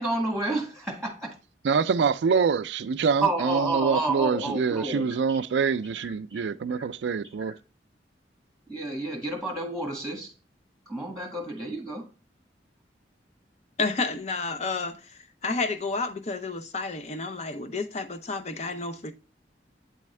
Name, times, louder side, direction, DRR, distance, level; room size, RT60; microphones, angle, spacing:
voice 1, 0.0-1.4 3.2-5.4 6.0-6.4 7.5-7.6 8.7-10.3 10.9-12.1, right 2 dB, 5° left, 1.3 m, -30 dB
voice 2, 1.6-7.6, right 5 dB, 80° right, 0.4 m, -25 dB
voice 3, 13.8-19.1, left 3 dB, 40° left, 0.6 m, -31 dB
8.4 x 3.5 x 3.2 m
head